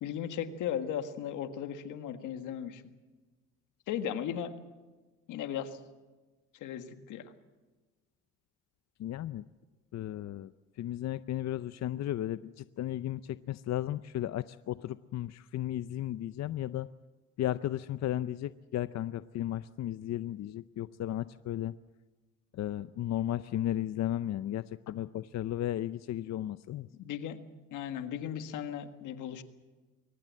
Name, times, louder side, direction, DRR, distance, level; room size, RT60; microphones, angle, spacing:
voice 1, 0.0-2.8 3.9-4.5 5.3-5.8 6.5-7.2 27.0-27.4 27.7-29.4, left 9 dB, 90° left, 9 dB, 1.7 m, -36 dB
voice 2, 9.0-9.4 9.9-10.5 10.8-16.9 17.4-21.7 22.5-26.9, left 12 dB, 60° left, 15 dB, 0.6 m, -34 dB
23.0 x 19.0 x 7.6 m, 1.3 s
cardioid pair, 90°, 30 cm